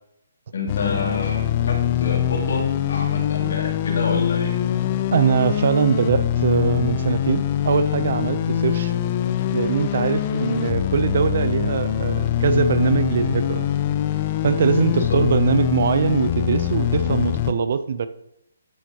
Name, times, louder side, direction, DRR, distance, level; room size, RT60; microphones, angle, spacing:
voice 1, 0.5-4.5 14.9-15.2, left 3 dB, 65° left, -1 dB, 3.2 m, -28 dB
sound 1, 0.7-17.5, left 11 dB, 30° left, 0.6 m, -23 dB
voice 2, 5.1-8.9 9.5-13.7 14.4-18.1, right 6 dB, 55° right, 13 dB, 0.7 m, -22 dB
13.0 x 8.2 x 3.0 m, 0.80 s
hypercardioid pair, 160°, 0 cm